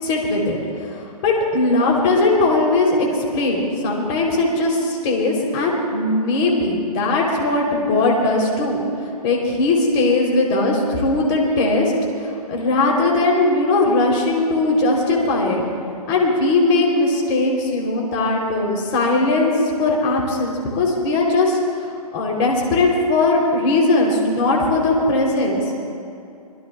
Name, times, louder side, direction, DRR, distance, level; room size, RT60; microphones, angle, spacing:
voice 1, 0.0-0.6 0.9-1.0 1.2-3.1 3.3-8.8 9.2-11.9 12.2-15.6 16.1-19.5 19.8-21.6 22.1-25.6, left 2 dB, 30° left, -1 dB, 3.5 m, -19 dB
24.5 x 21.5 x 2.4 m, 2.6 s
hypercardioid pair, 135°, 20 cm